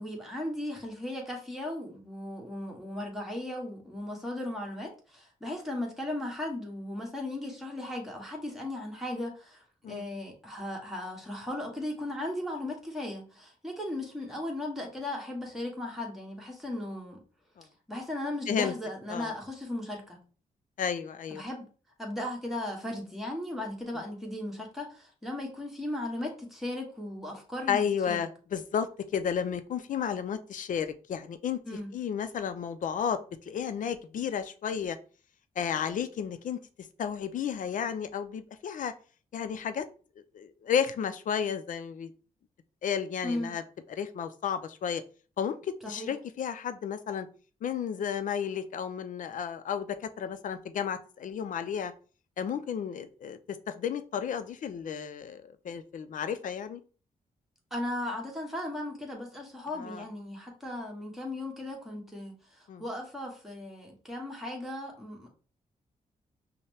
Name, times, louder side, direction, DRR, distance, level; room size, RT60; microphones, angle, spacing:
voice 1, 0.0-17.2 17.9-20.2 21.3-21.7 22.0-28.3 31.6-31.9 43.2-43.6 45.8-46.1 57.7-65.3, left 1 dB, ahead, -1 dB, 1.5 m, -37 dB
voice 2, 20.8-21.4 27.7-31.6 31.9-33.2 33.5-35.0 35.6-36.6 37.0-38.9 39.3-39.8 40.3-42.1 42.8-43.6 43.9-45.0 45.4-47.3 47.6-51.9 52.4-56.8 59.8-60.0 62.7-62.8, left 8 dB, 65° left, 11 dB, 0.5 m, -32 dB
5.4 x 2.1 x 3.3 m, 0.38 s
cardioid pair, 85°, 14 cm